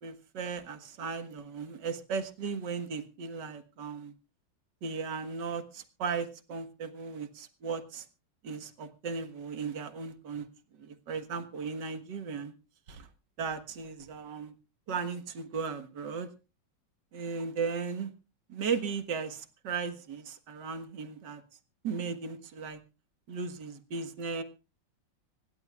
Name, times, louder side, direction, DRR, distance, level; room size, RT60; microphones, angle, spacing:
voice 1, 0.0-4.1 4.8-8.1 8.4-10.5 10.8-12.5 12.9-13.1 13.4-14.5 14.9-16.3 17.1-18.1 18.5-21.4 21.8-22.8 23.3-24.4, right 5 dB, 70° right, 8 dB, 2.1 m, -36 dB
26.5 x 11.5 x 2.4 m, 0.32 s
omnidirectional pair, 2.0 m